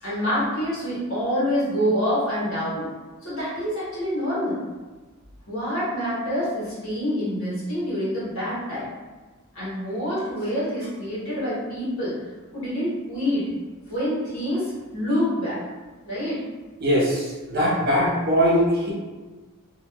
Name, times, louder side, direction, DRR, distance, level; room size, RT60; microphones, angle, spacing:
voice 1, 0.0-2.9 3.2-4.6 5.5-8.9 9.5-12.2 12.5-13.5 13.9-15.6 16.0-16.4, equal, 65° left, -10 dB, 1.5 m, -26 dB
voice 2, 16.8-18.9, equal, 45° right, -6 dB, 0.7 m, -21 dB
2.8 x 2.4 x 2.3 m, 1.3 s
head